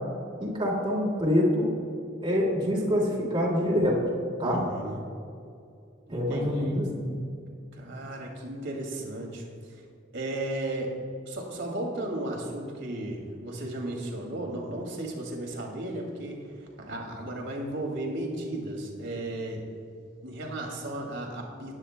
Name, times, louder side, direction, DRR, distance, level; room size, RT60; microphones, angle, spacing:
voice 1, 0.4-1.7 2.2-4.0 4.4-4.6 6.1-7.2, equal, 25° right, -4 dB, 2.4 m, -25 dB
voice 2, 4.4-5.1 6.1-6.7 7.7-9.4 10.1-10.9 11.3-19.6 20.2-21.7, right 1 dB, 60° right, 0 dB, 2.4 m, -35 dB
19.0 x 9.7 x 2.2 m, 2.5 s
head